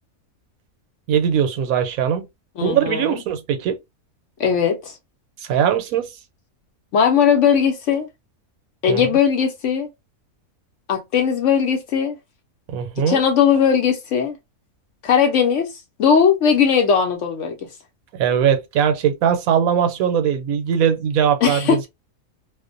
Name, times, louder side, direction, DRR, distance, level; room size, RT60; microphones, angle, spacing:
voice 1, 1.1-2.2 2.6-3.8 5.5-6.1 8.9-9.0 12.7-13.2 18.2-21.9, right 8 dB, 85° right, 1.0 m, -20 dB
voice 2, 2.6-3.2 4.4-4.9 6.9-8.1 8.8-9.9 10.9-12.2 13.0-14.4 15.0-15.7 16.0-17.6 21.4-21.9, left 7 dB, 65° left, 0.8 m, -18 dB
2.4 x 2.1 x 2.4 m
omnidirectional pair, 1.5 m